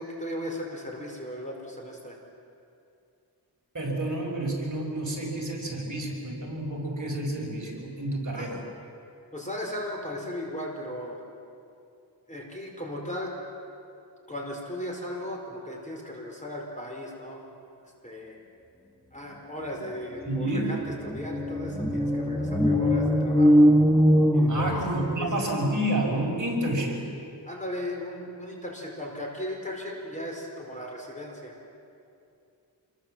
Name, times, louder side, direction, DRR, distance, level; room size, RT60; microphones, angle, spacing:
voice 1, 0.0-2.1 8.3-8.5 9.3-11.2 12.3-13.3 14.3-17.4 18.0-18.3 19.1-23.5 24.3-24.8 25.2-25.5 27.5-31.5, left 1 dB, 15° left, -1 dB, 4.9 m, -36 dB
voice 2, 3.7-8.6 20.2-20.8 24.5-27.0, right 1 dB, 40° right, -1 dB, 5.3 m, -29 dB
sound 1, 19.9-20.0 20.2-25.3, equal, ahead, 1.9 m, -22 dB
27.0 x 23.0 x 7.6 m, 2.5 s
wide cardioid pair, 100°, 45 cm